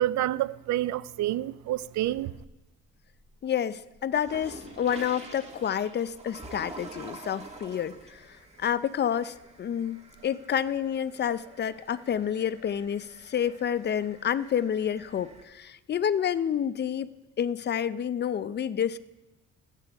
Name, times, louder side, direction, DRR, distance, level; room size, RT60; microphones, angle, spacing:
voice 1, 0.0-2.3, right 14 dB, 70° right, 0.5 m, -28 dB
sound 1, 1.7-2.7 3.1-15.4, right 2 dB, 20° right, 1.7 m, -48 dB
voice 2, 3.4-19.0, left 9 dB, 35° left, 0.5 m, -29 dB
15.5 x 9.1 x 3.5 m
cardioid pair, 90°, 30 cm